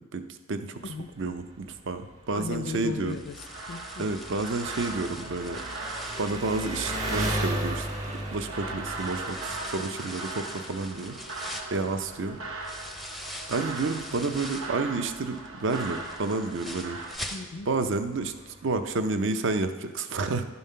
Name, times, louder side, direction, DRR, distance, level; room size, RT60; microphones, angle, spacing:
voice 1, 0.1-3.2 4.0-5.6 6.2-7.9 8.3-11.1 11.7-12.4 13.5-17.0 17.7-20.4, right 3 dB, 60° right, 9 dB, 0.6 m, -30 dB
Engine, 0.8-18.9, right 1 dB, 35° right, 1.6 m, -39 dB
voice 2, 0.9-1.3 2.3-4.1 17.3-17.7, left 4 dB, 55° left, 11 dB, 0.4 m, -37 dB
sound 1, 3.1-8.3 8.8-14.8 15.2-17.9 18.2-18.3 18.7-18.8, left 1 dB, ahead, 0.5 m, -43 dB
sound 2, 3.4-17.2, right 3 dB, 80° right, 1.1 m, -39 dB
11.0 x 5.5 x 5.5 m, 1.2 s
head